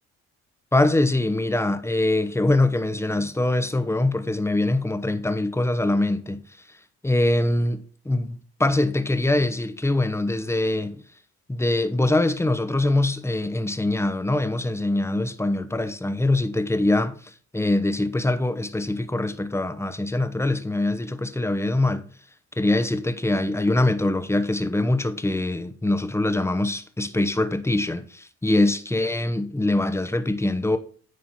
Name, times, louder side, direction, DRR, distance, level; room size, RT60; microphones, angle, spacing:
voice 1, 0.7-6.4 7.0-11.0 11.5-22.0 22.6-30.8, left 2 dB, 10° left, 0.9 m, -23 dB
9.7 x 4.2 x 4.2 m
supercardioid pair, 65°, 33 cm